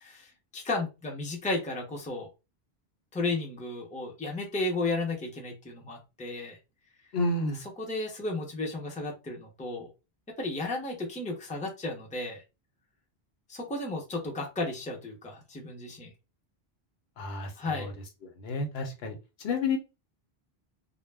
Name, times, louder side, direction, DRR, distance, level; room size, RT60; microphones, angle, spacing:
voice 1, 0.0-2.3 3.1-6.6 7.6-9.9 10.4-12.4 13.5-16.1 17.6-17.9, left 2 dB, 10° left, -1 dB, 0.5 m, -33 dB
voice 2, 7.1-7.6 17.2-17.5 17.8-17.9 18.4-19.2 19.4-19.8, left 3 dB, 80° left, 4 dB, 0.9 m, -29 dB
2.3 x 2.0 x 3.3 m, 0.27 s
omnidirectional pair, 1.0 m